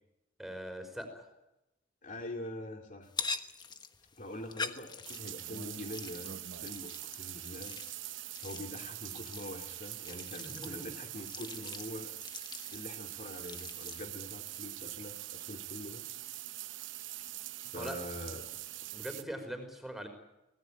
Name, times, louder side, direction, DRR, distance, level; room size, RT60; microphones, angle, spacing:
voice 1, 0.4-1.3 10.4-10.9 17.7-18.0 18.9-20.1, equal, ahead, 6 dB, 5.2 m, -41 dB
voice 2, 2.0-3.1 4.2-6.3 6.6-7.8 8.4-12.1 12.7-16.0 17.6-18.4, left 1 dB, 45° left, 3 dB, 2.6 m, -44 dB
sound 1, 3.0-14.0, left 4 dB, 25° left, 1.3 m, -44 dB
sound 2, 5.0-19.2, right 14 dB, 80° right, 0.8 m, -44 dB
24.5 x 19.5 x 9.1 m, 0.92 s
head